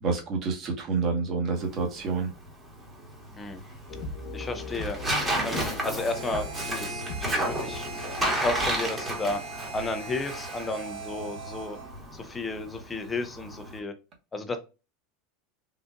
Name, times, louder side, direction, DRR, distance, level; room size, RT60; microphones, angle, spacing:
voice 1, 0.0-2.3, right 4 dB, 35° right, 1.1 m, -28 dB
Tearing, 1.6-13.8, right 1 dB, 15° right, 1.2 m, -33 dB
sound 1, 3.9-10.8, left 2 dB, 60° left, 1.0 m, -40 dB
voice 2, 4.3-5.0 5.4-7.9 8.4-9.4 9.7-11.8 12.1-13.9 14.3-14.6, left 2 dB, 15° left, 0.5 m, -33 dB
Harmonica, 6.0-12.0, right 6 dB, 85° right, 1.0 m, -41 dB
3.8 x 2.5 x 2.2 m
supercardioid pair, 140°, 0 cm